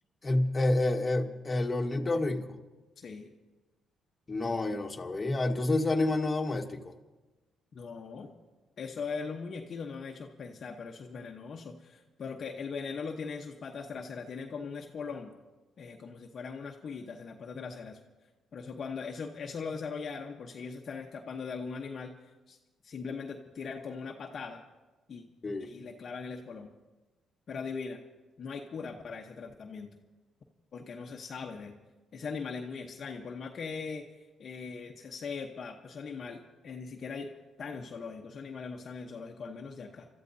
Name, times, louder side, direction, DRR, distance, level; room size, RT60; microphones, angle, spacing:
voice 1, 0.2-2.5 4.3-6.9 25.4-25.7, left 2 dB, 25° left, 2 dB, 1.4 m, -29 dB
voice 2, 3.0-3.3 7.7-8.3 8.8-15.3 15.8-18.0 18.5-22.1 22.5-22.6 22.8-24.6 25.1-25.2 25.6-26.7 27.5-28.0 28.4-29.9 30.7-31.8 32.1-34.1 34.4-37.3 37.6-40.1, left 5 dB, 50° left, 1 dB, 1.0 m, -40 dB
30.0 x 13.5 x 2.7 m, 1.2 s
cardioid pair, 90°, 0 cm